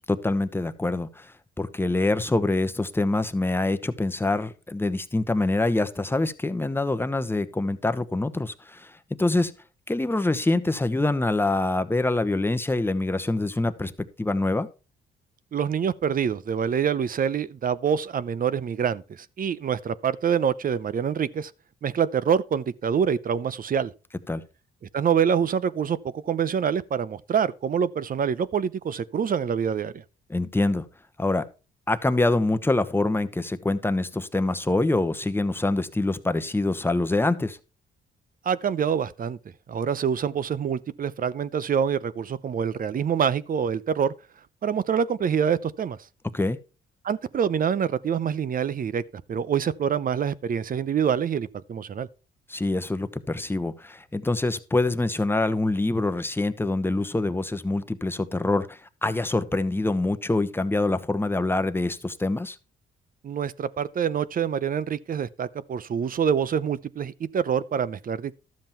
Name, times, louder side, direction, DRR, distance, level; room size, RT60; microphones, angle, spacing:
voice 1, 0.1-9.5 9.9-13.9 14.2-14.7 24.3-24.4 30.3-30.8 31.2-31.5 31.9-37.6 46.3-46.6 52.5-62.6, left 2 dB, 10° left, 1.0 m, -25 dB
voice 2, 15.5-21.5 21.8-23.9 24.9-30.0 38.4-39.4 39.7-44.1 44.6-46.0 47.0-49.0 49.3-52.1 63.2-68.4, right 7 dB, 45° right, 0.7 m, -26 dB
12.5 x 7.4 x 4.5 m
cardioid pair, 90°, 20 cm